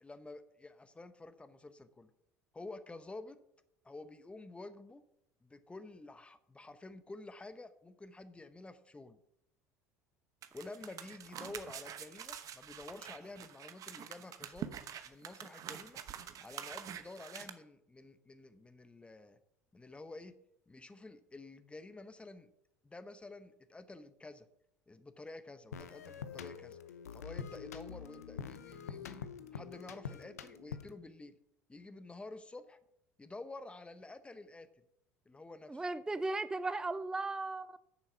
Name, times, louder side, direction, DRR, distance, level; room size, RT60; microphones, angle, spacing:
voice 1, 0.0-2.1 2.5-3.4 3.8-5.0 5.4-9.2 10.5-14.8 15.0-16.0 16.4-19.4 19.7-20.4 20.7-22.5 22.8-24.5 24.9-26.8 27.1-31.4 31.7-32.8 33.2-34.7 35.3-35.8, left 2 dB, 15° left, 12 dB, 0.9 m, -50 dB
sound 1, 10.4-17.5, right 9 dB, 45° right, 1.0 m, -46 dB
sound 2, 25.7-31.1, left 7 dB, 80° left, 0.7 m, -45 dB
voice 2, 35.7-37.8, right 2 dB, 10° right, 15 dB, 0.4 m, -36 dB
9.1 x 6.9 x 5.8 m, 0.78 s
figure-of-eight pair, 70°, 8 cm